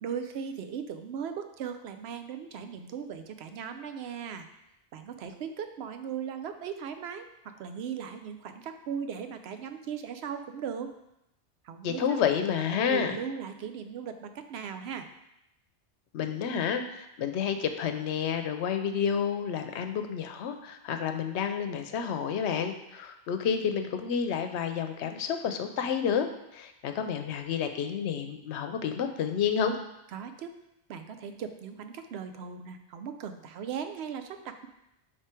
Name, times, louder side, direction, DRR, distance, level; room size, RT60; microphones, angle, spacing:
voice 1, 0.0-4.5 4.9-10.9 11.6-12.2 12.6-15.1 30.1-30.5 30.9-34.7, right 7 dB, 70° right, 8 dB, 0.8 m, -38 dB
voice 2, 11.8-13.2 16.1-26.3 26.5-29.8, left 7 dB, 80° left, 7 dB, 0.9 m, -30 dB
4.9 x 4.7 x 4.4 m, 0.86 s
omnidirectional pair, 1.1 m